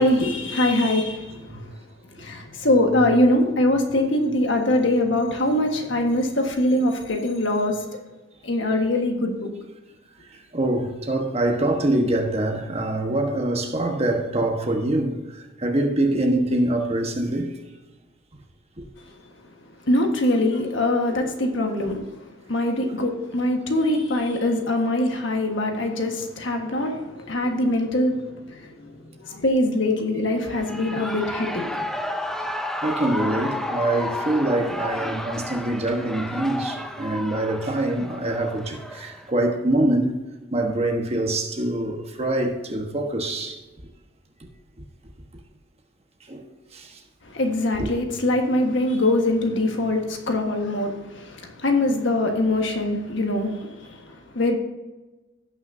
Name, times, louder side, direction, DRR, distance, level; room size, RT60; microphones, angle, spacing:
voice 1, 0.0-1.7 2.2-7.8 8.4-9.5 19.9-22.0 22.5-31.7 47.2-54.6, left 1 dB, 65° left, 1.5 m, -23 dB
voice 2, 10.3-17.6 18.8-18.9 32.8-40.2 40.5-43.6 46.3-47.0 47.7-47.9, right 1 dB, 30° right, 1.3 m, -24 dB
Shout / Cheering, 30.4-39.3, left 1 dB, ahead, 0.5 m, -32 dB
17.5 x 6.2 x 2.7 m
head